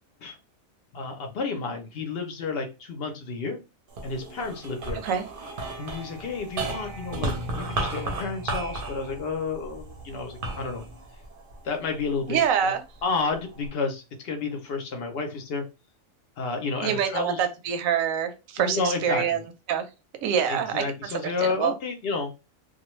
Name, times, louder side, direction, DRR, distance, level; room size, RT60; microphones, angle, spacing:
voice 1, 0.9-3.6 4.0-5.0 5.8-10.8 11.6-12.4 12.6-12.7 13.0-15.6 16.4-17.4 18.6-19.4 20.5-22.3, left 4 dB, 60° left, 4 dB, 0.7 m, -31 dB
sound 1, 3.9-12.4 12.9-13.7, right 2 dB, 50° right, 0.7 m, -34 dB
voice 2, 12.3-12.8 16.8-19.4 19.7-19.9 20.2-20.9 21.1-21.7, right 8 dB, 80° right, 8 dB, 1.0 m, -25 dB
2.4 x 2.2 x 3.0 m, 0.27 s
omnidirectional pair, 1.4 m